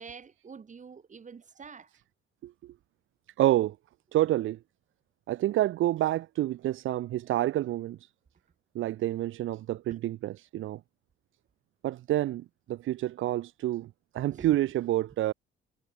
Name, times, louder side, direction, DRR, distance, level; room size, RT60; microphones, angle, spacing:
voice 1, 0.0-1.9 14.3-14.5, right 6 dB, 40° right, 2.6 m, -46 dB
voice 2, 2.4-2.7 3.4-3.7 4.1-4.6 5.3-8.0 8.7-10.8 11.8-13.9 14.1-15.3, right 14 dB, 80° right, 1.5 m, -28 dB
cardioid pair, 90°, 20 cm